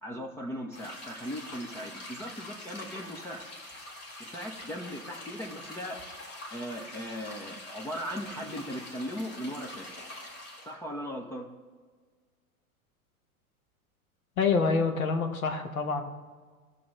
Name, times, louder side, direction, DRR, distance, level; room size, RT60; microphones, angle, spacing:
voice 1, 0.0-3.4 4.3-6.0 6.5-9.9 10.7-11.5, equal, 5° left, -1 dB, 0.4 m, -38 dB
sound 1, 0.7-10.7, left 1 dB, 35° left, 2.1 m, -44 dB
voice 2, 14.4-16.0, left 4 dB, 70° left, 5 dB, 1.2 m, -26 dB
17.5 x 6.4 x 3.1 m, 1.5 s
figure-of-eight pair, 90°, 44 cm